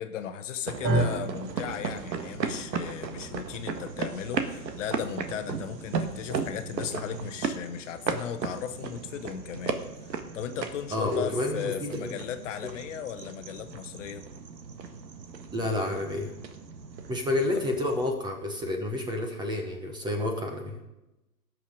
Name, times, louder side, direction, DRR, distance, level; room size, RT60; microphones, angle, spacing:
voice 1, 0.0-14.2 17.5-17.6, left 8 dB, 50° left, 9 dB, 1.0 m, -36 dB
sound 1, 0.6-18.1, right 5 dB, 85° right, 1.6 m, -36 dB
sound 2, 0.8-9.1, right 2 dB, 25° right, 1.9 m, -36 dB
voice 2, 10.9-12.2 15.5-16.3 17.1-20.8, left 2 dB, 10° right, 4 dB, 1.0 m, -29 dB
18.5 x 6.4 x 5.0 m, 0.95 s
hypercardioid pair, 145°, 49 cm